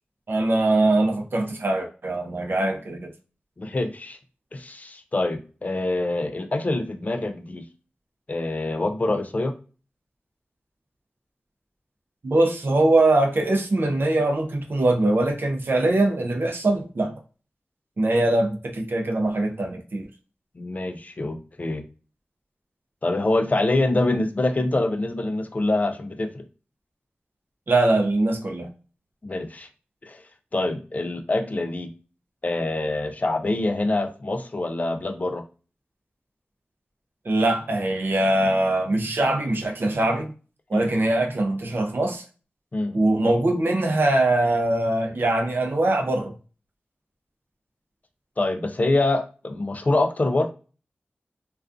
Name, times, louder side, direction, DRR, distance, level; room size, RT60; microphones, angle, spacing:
voice 1, 0.3-3.1 12.2-17.1 18.0-20.1 27.7-28.7 37.2-40.3 40.7-42.2 42.9-46.3, right 2 dB, 60° right, 0.5 m, -22 dB
voice 2, 3.6-4.2 4.5-7.6 8.3-9.5 20.6-21.8 23.0-26.4 29.2-29.7 30.1-30.2 30.5-31.9 32.4-35.4 40.7-40.9 42.7-43.0 48.4-50.5, left 2 dB, 40° left, 0.4 m, -25 dB
2.4 x 2.3 x 2.4 m
wide cardioid pair, 60°, 4 cm